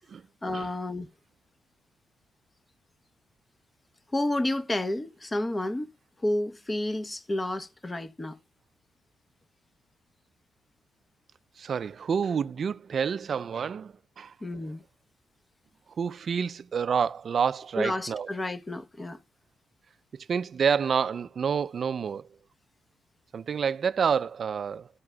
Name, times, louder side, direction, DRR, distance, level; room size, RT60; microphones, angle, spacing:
voice 1, 0.4-1.1 4.1-5.9 6.2-8.4 14.4-14.8 17.8-19.2, left 1 dB, 20° left, 0.9 m, -30 dB
voice 2, 11.6-14.3 16.0-18.3 20.1-22.3 23.3-24.9, right 6 dB, 50° right, 0.4 m, -28 dB
14.5 x 4.8 x 2.3 m
cardioid pair, 115°, 0 cm